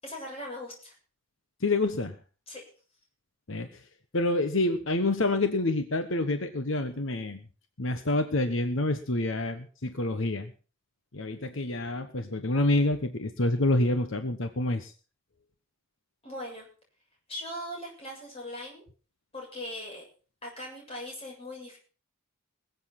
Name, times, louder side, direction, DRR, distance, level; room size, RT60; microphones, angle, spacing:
voice 1, 0.0-0.9 2.5-2.6 16.2-16.7 17.3-18.8 19.3-20.0 20.4-21.8, left 1 dB, 25° left, -1 dB, 7.3 m, -39 dB
voice 2, 1.6-2.1 3.5-3.8 4.1-7.4 7.8-10.5 11.1-14.9, left 2 dB, 70° left, 9 dB, 1.1 m, -27 dB
21.0 x 8.1 x 6.0 m, 0.38 s
head